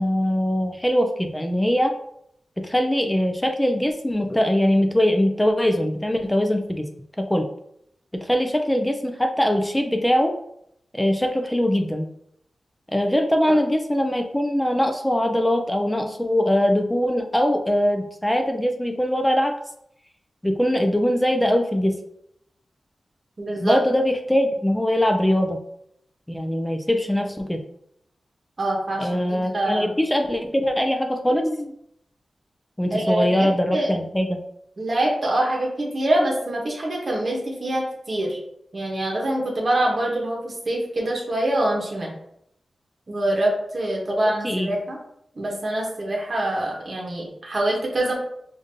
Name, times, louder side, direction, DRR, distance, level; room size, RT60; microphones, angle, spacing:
voice 1, 0.0-2.0 2.6-6.9 7.2-7.5 8.1-10.4 10.9-12.1 12.9-19.5 20.4-22.0 23.6-25.6 26.3-27.6 29.0-31.7 32.8-34.4 44.1-44.2 44.4-44.7, equal, 5° left, 5 dB, 0.3 m, -22 dB
voice 2, 23.4-23.8 28.6-29.9 32.9-33.9 34.8-38.4 38.7-42.1 43.1-45.0 45.4-48.1, right 1 dB, 40° right, -1 dB, 0.9 m, -25 dB
5.1 x 2.5 x 2.7 m, 0.73 s
wide cardioid pair, 170°, 0 cm